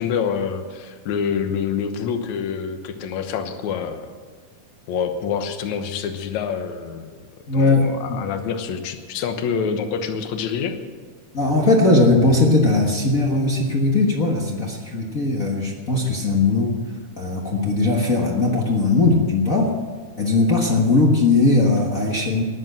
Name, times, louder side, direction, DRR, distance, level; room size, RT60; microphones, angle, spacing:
voice 1, 0.0-4.1 4.9-7.2 7.5-10.8, left 6 dB, 70° left, 7 dB, 2.3 m, -26 dB
voice 2, 7.5-8.2 11.3-16.8 17.2-19.8 20.2-22.4, left 2 dB, 50° left, 0 dB, 0.9 m, -19 dB
15.0 x 10.5 x 7.7 m, 1.5 s
omnidirectional pair, 3.7 m